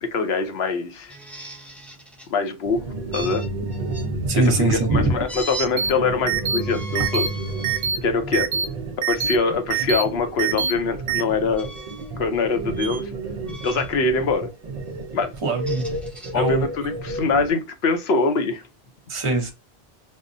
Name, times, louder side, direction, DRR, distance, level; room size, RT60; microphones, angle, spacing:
voice 1, 0.0-1.1 2.3-2.8 3.1-3.4 4.3-7.3 8.0-8.5 9.1-11.7 12.2-13.1 13.6-14.5 15.1-15.3 16.3-18.6, left 4 dB, 70° left, 1.0 m, -23 dB
sound 1, 1.1-2.3 3.1-4.1 5.3-5.7 6.5-7.9 8.5-8.7 10.5-10.7 11.5-12.1 12.7-13.0 13.5-14.0 15.4-16.3, right 2 dB, ahead, 0.5 m, -37 dB
sound 2, 2.6-17.5, right 2 dB, 50° right, 0.5 m, -32 dB
voice 2, 4.3-5.2 15.4-15.9 16.3-16.7 19.1-19.5, right 2 dB, 30° right, 0.8 m, -21 dB
sound 3, 5.8-5.9 6.3-6.6 6.9-7.3 7.6-8.0 8.3-8.6 9.0-9.3 9.7-10.0 10.4-10.7 11.1-11.2, right 7 dB, 75° right, 0.8 m, -23 dB
5.3 x 2.1 x 2.6 m
omnidirectional pair, 1.1 m